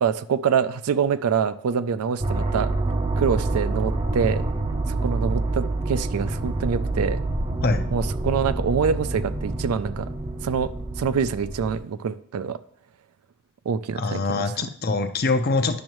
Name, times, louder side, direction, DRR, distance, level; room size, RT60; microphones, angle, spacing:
voice 1, 0.0-2.7 3.2-4.4 4.9-7.2 7.9-10.1 10.4-10.7 11.0-12.6 13.7-14.4, right 6 dB, 80° right, 14 dB, 0.4 m, -25 dB
sound 1, 2.2-11.8, right 2 dB, 25° right, 0.5 m, -27 dB
voice 2, 14.0-15.8, left 3 dB, 45° left, 9 dB, 0.5 m, -24 dB
10.5 x 6.2 x 3.1 m, 0.63 s
head